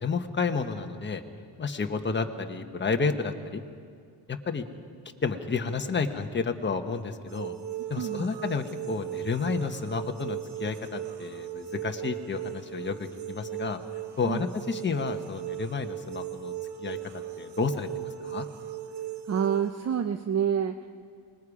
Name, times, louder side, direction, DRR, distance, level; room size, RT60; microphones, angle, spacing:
voice 1, 0.0-1.2 1.6-3.6 4.3-4.6 5.2-7.5 7.9-13.8 14.2-16.5 16.8-17.0 17.4-18.5, left 5 dB, 25° left, 5 dB, 1.1 m, -31 dB
sound 1, 7.3-19.7, right 11 dB, 60° right, 1.1 m, -37 dB
voice 2, 8.0-8.3 14.2-14.4 19.3-20.9, right 8 dB, 35° right, 8 dB, 0.6 m, -28 dB
25.5 x 20.5 x 4.9 m, 2.1 s
cardioid pair, 145°, 46 cm